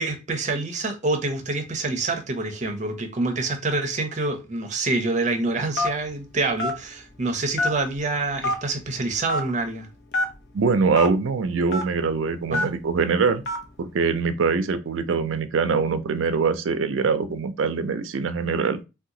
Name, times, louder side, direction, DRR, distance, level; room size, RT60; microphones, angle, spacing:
voice 1, 0.0-9.9 12.5-12.7, right 3 dB, 35° right, 0.6 m, -26 dB
Telephone, 5.8-6.1 6.6-6.8 7.6-8.0 8.4-8.6 9.3-9.5 10.1-10.3 10.9-11.1 11.7-11.8 12.5-12.8 13.5-13.6, left 1 dB, 55° left, 0.7 m, -24 dB
voice 2, 10.5-13.4 13.8-18.8, right 5 dB, 80° right, 0.4 m, -23 dB
2.8 x 2.3 x 3.7 m
head